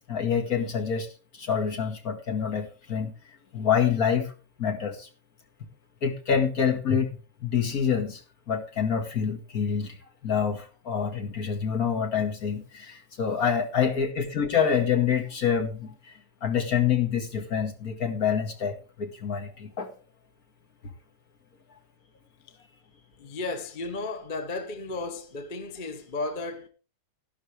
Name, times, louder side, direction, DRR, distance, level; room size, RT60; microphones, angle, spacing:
voice 1, 0.1-1.1 1.3-3.1 3.5-4.3 4.6-5.1 6.0-8.2 8.5-10.0 10.2-19.9, left 7 dB, 50° left, 2.3 m, -27 dB
voice 2, 23.2-26.7, left 3 dB, 30° left, 1.2 m, -34 dB
13.0 x 11.5 x 3.4 m
omnidirectional pair, 2.0 m